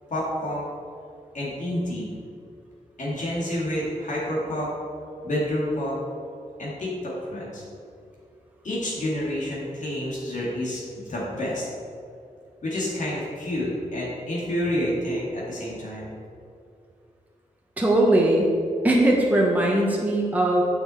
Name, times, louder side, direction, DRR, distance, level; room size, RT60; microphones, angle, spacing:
voice 1, 0.1-0.6 1.3-2.2 3.0-4.7 5.2-6.0 6.6-7.6 8.6-11.7 12.6-16.1, left 1 dB, 60° left, -6 dB, 2.3 m, -29 dB
voice 2, 17.8-18.5 18.8-20.6, right 1 dB, 10° right, -2 dB, 1.1 m, -20 dB
8.8 x 6.9 x 4.4 m, 2.5 s
wide cardioid pair, 110°, 14 cm